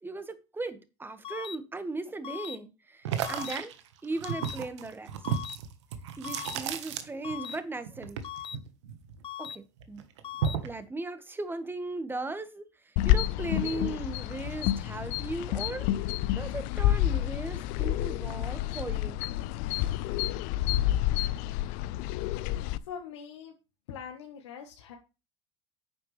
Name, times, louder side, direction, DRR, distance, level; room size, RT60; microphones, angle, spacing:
voice 1, 0.0-3.7 4.0-5.1 6.2-8.2 9.4-10.0 10.6-15.9 16.4-19.2, right 2 dB, 15° right, 1.8 m, -37 dB
sound 1, 1.2-1.6 2.2-2.6 3.2-3.6 4.2-4.6 5.2-5.6 6.2-6.6 7.2-7.6 8.2-8.6 9.2-9.6 10.2-10.6, left 10 dB, 35° left, 0.9 m, -39 dB
sound 2, 3.0-7.6 7.8-9.5 9.8-10.8, right 8 dB, 75° right, 1.5 m, -34 dB
sound 3, 13.0-22.8, left 14 dB, 60° left, 0.7 m, -29 dB
voice 2, 22.4-23.5 23.9-25.0, left 7 dB, 75° left, 1.6 m, -43 dB
10.5 x 9.0 x 3.4 m
hypercardioid pair, 75°, 15 cm